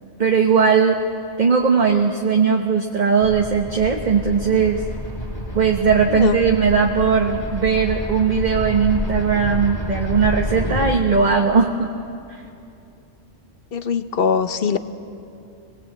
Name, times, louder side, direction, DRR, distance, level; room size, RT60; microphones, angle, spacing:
voice 1, 0.2-1.0 1.4-4.8 5.5-11.9 12.3-12.4, right 5 dB, 40° right, 2 dB, 1.2 m, -18 dB
sound 1, 3.2-10.9, equal, 20° left, 1.9 m, -29 dB
voice 2, 13.7-14.8, left 6 dB, 55° left, 10 dB, 1.0 m, -21 dB
24.5 x 19.5 x 8.0 m, 2.6 s
omnidirectional pair, 1.2 m